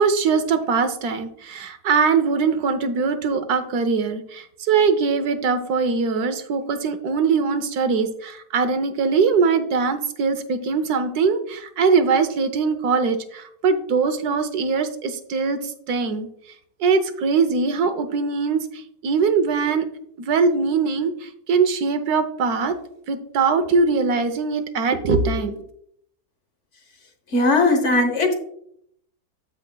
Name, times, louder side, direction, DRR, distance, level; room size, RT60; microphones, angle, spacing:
voice 1, 0.0-16.3 16.8-19.8 20.2-22.8 23.1-25.7, right 5 dB, 85° right, 10 dB, 1.4 m, -21 dB
voice 2, 27.3-28.3, left 2 dB, 50° left, 5 dB, 1.3 m, -18 dB
14.0 x 5.2 x 2.2 m, 0.68 s
omnidirectional pair, 1.6 m